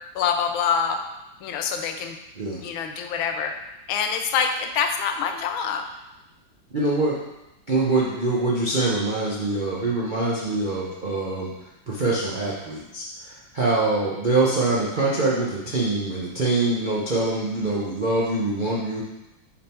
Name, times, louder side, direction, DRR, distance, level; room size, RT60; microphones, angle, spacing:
voice 1, 0.1-1.0 1.4-2.2 2.6-3.5 3.9-5.9, left 7 dB, 90° left, 5 dB, 1.5 m, -25 dB
voice 2, 6.7-7.2 7.7-11.5 11.9-13.0 13.5-19.0, right 2 dB, 60° right, -6 dB, 0.5 m, -24 dB
6.4 x 3.7 x 4.3 m, 0.95 s
omnidirectional pair, 2.1 m